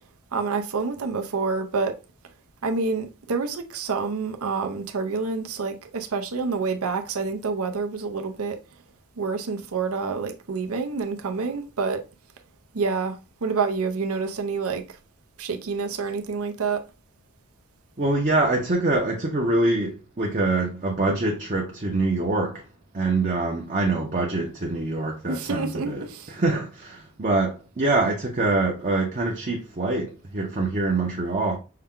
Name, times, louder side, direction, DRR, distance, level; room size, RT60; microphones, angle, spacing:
voice 1, 0.3-2.0 2.6-8.6 9.2-12.0 12.7-15.0 15.4-16.8 25.3-26.4, right 4 dB, 75° right, 0.6 m, -28 dB
voice 2, 18.0-22.6 22.9-26.0 26.3-31.6, right 2 dB, 35° right, 0.7 m, -24 dB
5.6 x 2.2 x 3.7 m
head